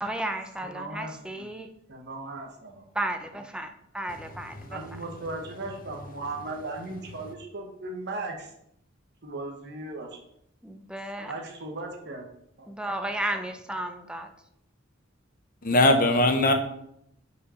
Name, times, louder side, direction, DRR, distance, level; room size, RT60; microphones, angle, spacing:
voice 1, 0.0-1.7 2.9-4.8 10.6-11.3 12.7-14.3, right 1 dB, 5° right, 6 dB, 0.6 m, -33 dB
voice 2, 0.7-1.5 1.9-2.9 4.6-8.5 9.2-10.2 11.2-12.3 12.6-12.7 13.0-13.1, right 2 dB, 60° right, 1 dB, 1.2 m, -37 dB
voice 3, 15.6-16.5, left 1 dB, 45° left, 6 dB, 0.9 m, -20 dB
5.7 x 4.8 x 5.6 m, 0.75 s
head